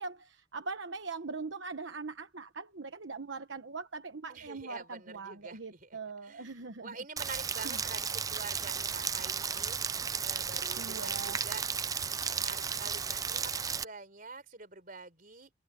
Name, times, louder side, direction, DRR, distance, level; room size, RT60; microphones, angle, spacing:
voice 1, 0.0-6.9 7.6-7.8 10.8-11.4, right 4 dB, 70° right, 1.1 m, -41 dB
voice 2, 4.3-9.8 10.2-11.7 12.3-15.5, right 4 dB, 45° right, 4.1 m, -47 dB
Rain, 7.2-13.8, right 6 dB, 20° right, 0.4 m, -34 dB
head